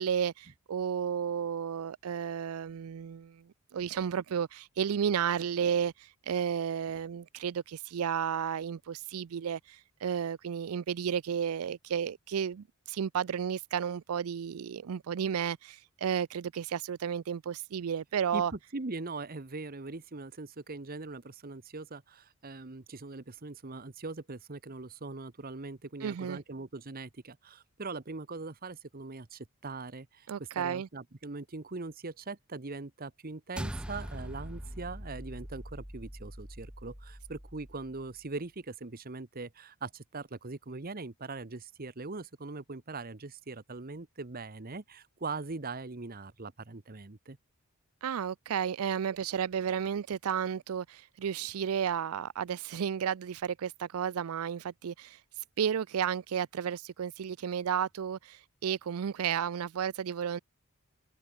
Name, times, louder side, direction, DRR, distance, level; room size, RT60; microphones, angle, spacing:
voice 1, 0.0-3.4 3.7-18.5 26.0-26.4 30.3-30.9 48.0-60.4, right 8 dB, 75° right, 0.4 m, -32 dB
voice 2, 18.3-47.4, right 3 dB, 40° right, 1.1 m, -41 dB
sound 1, 33.6-38.1, equal, 5° right, 0.9 m, -42 dB
head